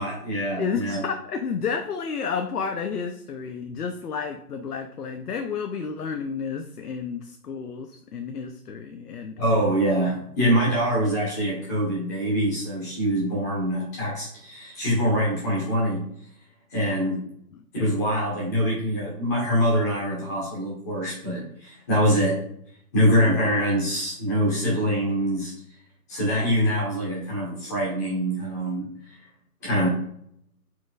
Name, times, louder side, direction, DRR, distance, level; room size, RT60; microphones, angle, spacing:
voice 1, 0.0-1.0 9.4-16.1 16.7-17.2 17.7-22.4 22.9-25.5 26.1-29.1 29.6-29.9, equal, 10° left, -6 dB, 1.3 m, -24 dB
voice 2, 0.6-9.3 10.9-11.1, left 6 dB, 70° left, 5 dB, 0.8 m, -31 dB
8.1 x 4.6 x 2.5 m, 0.70 s
hypercardioid pair, 170°, 48 cm